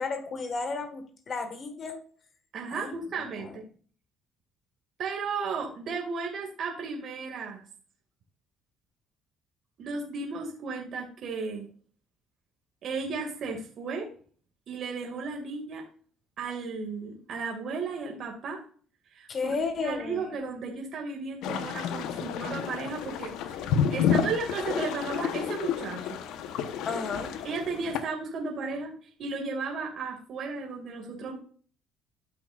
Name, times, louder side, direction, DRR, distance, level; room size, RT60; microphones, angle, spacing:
voice 1, 0.0-2.0 2.7-2.9 19.3-20.3 26.8-27.3, left 4 dB, 45° left, 7 dB, 1.5 m, -32 dB
voice 2, 2.5-3.6 5.0-7.6 9.8-11.7 12.8-14.1 14.7-15.8 16.4-18.6 19.1-19.5 19.8-23.3 23.9-26.2 27.4-31.4, right 4 dB, 55° right, 1 dB, 2.1 m, -34 dB
sound 1, 21.4-28.0, left 8 dB, 75° left, 0.9 m, -30 dB
13.0 x 5.9 x 2.4 m, 0.44 s
supercardioid pair, 80°, 0 cm